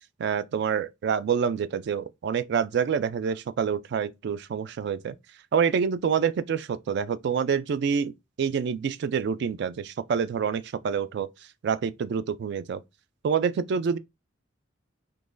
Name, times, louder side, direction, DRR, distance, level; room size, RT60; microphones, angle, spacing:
voice 1, 0.2-5.1 5.5-8.1 8.4-11.3 11.6-12.8 13.2-14.0, right 6 dB, 60° right, 0.3 m, -27 dB
3.8 x 2.9 x 2.5 m
head